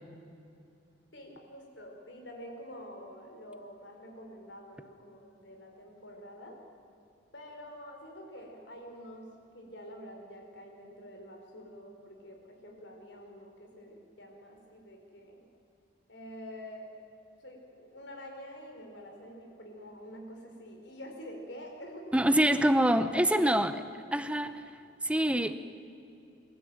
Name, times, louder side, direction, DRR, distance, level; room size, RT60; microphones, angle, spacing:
voice 1, 1.1-6.6 7.3-15.5 16.1-16.9 17.4-22.2 23.0-23.6, equal, 80° left, 2 dB, 4.7 m, -47 dB
voice 2, 22.1-23.8 24.1-24.5 25.0-25.5, right 1 dB, 5° right, 11 dB, 0.9 m, -25 dB
25.0 x 14.0 x 9.0 m, 2.7 s
head